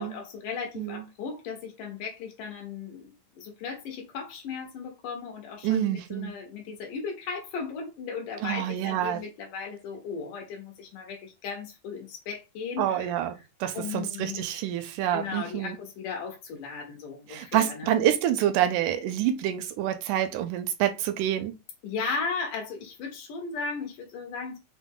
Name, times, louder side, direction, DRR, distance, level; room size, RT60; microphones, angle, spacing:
voice 1, 0.0-13.1 13.7-14.5 15.1-17.9 21.8-24.6, left 5 dB, 80° left, 2.9 m, -36 dB
voice 2, 5.6-6.3 8.4-9.2 12.8-13.3 13.6-15.8 17.3-21.5, right 11 dB, 80° right, 2.1 m, -27 dB
5.7 x 2.0 x 3.7 m
omnidirectional pair, 3.6 m